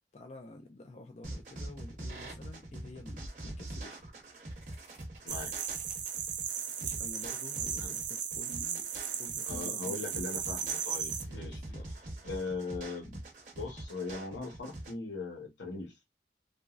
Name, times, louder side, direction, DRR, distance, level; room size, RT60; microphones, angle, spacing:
voice 1, 0.1-4.0 6.8-8.9 9.2-10.2 11.2-11.8, left 2 dB, 40° left, 0.4 m, -49 dB
sound 1, 1.2-14.9, right 1 dB, 45° right, 0.8 m, -44 dB
sound 2, 5.3-11.2, right 8 dB, 80° right, 0.5 m, -36 dB
voice 2, 9.4-11.6 12.2-13.2 13.6-15.9, left 3 dB, 85° left, 1.0 m, -39 dB
3.0 x 2.4 x 2.4 m
head